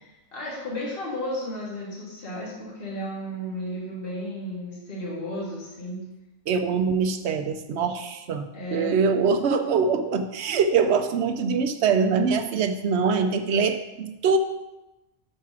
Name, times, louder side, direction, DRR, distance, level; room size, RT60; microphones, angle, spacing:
voice 1, 0.0-6.0 8.5-8.9, equal, 45° left, -6 dB, 2.0 m, -33 dB
voice 2, 6.5-14.4, right 5 dB, 65° right, 7 dB, 0.8 m, -23 dB
6.5 x 4.7 x 6.1 m, 1.0 s
omnidirectional pair, 1.4 m